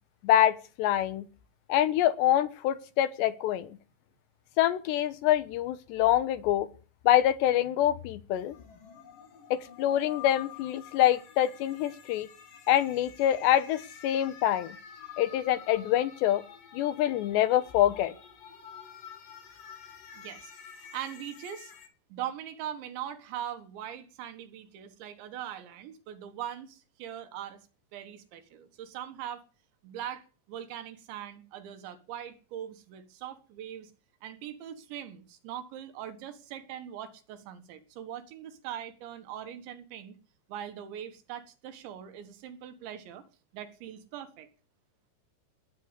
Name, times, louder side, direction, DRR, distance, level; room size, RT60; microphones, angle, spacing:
voice 1, 0.2-1.3 1.7-3.8 4.6-6.7 7.0-8.6 9.5-12.3 12.7-14.8 15.2-16.4 16.7-18.1, left 12 dB, 75° left, 3.2 m, -25 dB
sound 1, 8.4-21.9, left 8 dB, 50° left, 3.7 m, -49 dB
voice 2, 20.1-21.7 22.1-27.6 27.9-29.4 29.8-33.9 34.2-40.2 40.5-43.2 43.5-44.5, right 10 dB, 80° right, 3.8 m, -41 dB
18.5 x 9.3 x 8.2 m
omnidirectional pair, 5.2 m